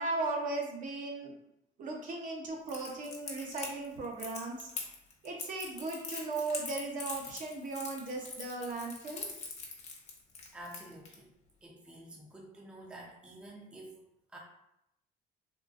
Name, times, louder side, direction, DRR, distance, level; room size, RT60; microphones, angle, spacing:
voice 1, 0.0-1.3 1.8-4.7 5.2-9.3, right 3 dB, 50° right, 0 dB, 0.7 m, -37 dB
Crackle, 2.7-11.1, left 4 dB, 40° left, 0.8 m, -42 dB
voice 2, 10.5-11.3 11.6-14.0 14.3-14.4, right 1 dB, 5° right, -2 dB, 0.5 m, -49 dB
3.7 x 2.4 x 2.4 m, 0.82 s
cardioid pair, 110°, 17 cm